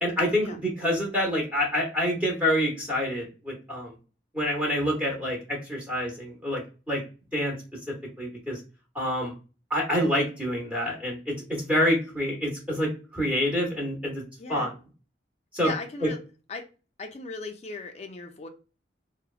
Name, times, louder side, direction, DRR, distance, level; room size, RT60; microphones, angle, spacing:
voice 1, 0.0-4.0 4.3-6.6 6.9-7.0 7.3-7.5 8.2-8.6 8.9-9.3 9.7-14.2 14.5-14.7 15.5-15.7, equal, 10° right, -3 dB, 0.8 m, -27 dB
voice 2, 14.4-14.7 15.6-16.2 16.5-16.6 17.0-18.5, left 4 dB, 35° left, 6 dB, 0.3 m, -37 dB
2.8 x 2.0 x 2.3 m, 0.33 s
head